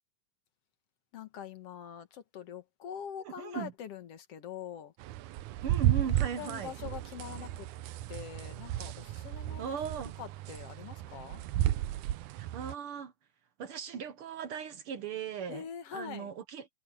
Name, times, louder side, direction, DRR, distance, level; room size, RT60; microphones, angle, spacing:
voice 1, 1.1-4.9 6.1-7.7 8.1-9.6 10.2-11.4 15.5-16.3, left 8 dB, 60° left, 2.3 m, -44 dB
voice 2, 3.2-3.7 5.6-6.7 9.6-10.2 12.3-13.1 13.6-16.7, right 7 dB, 65° right, 1.5 m, -38 dB
sound 1, 5.0-12.7, right 13 dB, 85° right, 2.1 m, -33 dB
omnidirectional pair, 3.5 m